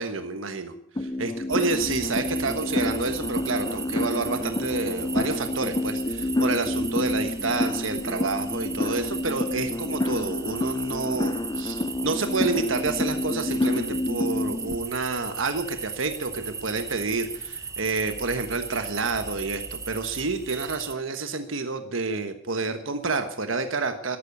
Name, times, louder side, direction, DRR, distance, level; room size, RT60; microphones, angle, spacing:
voice 1, 0.0-24.2, right 3 dB, 75° right, 8 dB, 1.3 m, -29 dB
sound 1, 1.0-14.8, left 2 dB, 20° left, 0.6 m, -29 dB
sound 2, 1.5-20.9, right 5 dB, 15° right, 0.7 m, -37 dB
13.5 x 12.5 x 8.2 m, 0.63 s
head